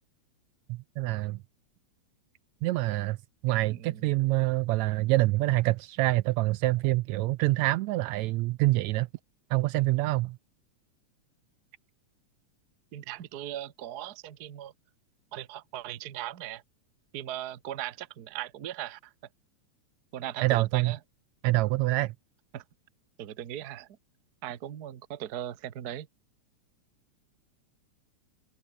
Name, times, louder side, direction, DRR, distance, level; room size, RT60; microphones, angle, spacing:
voice 1, 0.7-1.4 2.6-3.2 3.4-9.1 9.5-10.4 20.4-20.9 21.4-22.1, right 18 dB, 80° right, 1.8 m, -26 dB
voice 2, 3.7-4.1 12.9-14.7 15.3-16.6 17.1-19.1 20.1-21.0 22.5-22.6 23.2-24.0 24.4-26.1, right 12 dB, 55° right, 1.1 m, -38 dB
open air
omnidirectional pair, 3.5 m